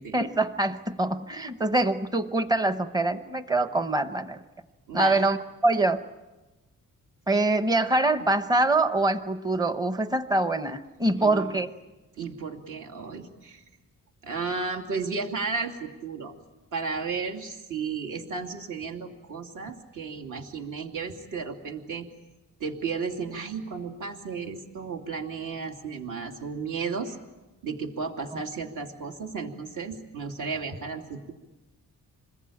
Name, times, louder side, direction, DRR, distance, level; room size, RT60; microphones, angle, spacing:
voice 1, 0.1-4.4 4.9-5.4 5.6-6.0 7.3-11.7 28.3-28.4, right 2 dB, 10° right, 10 dB, 0.9 m, -24 dB
voice 2, 4.9-5.3 11.2-11.6 12.2-13.6 14.2-16.3 16.7-22.1 22.6-27.2 27.6-31.3, right 5 dB, 60° right, 3 dB, 2.8 m, -33 dB
27.0 x 21.0 x 8.7 m, 1.1 s
wide cardioid pair, 175°, 34 cm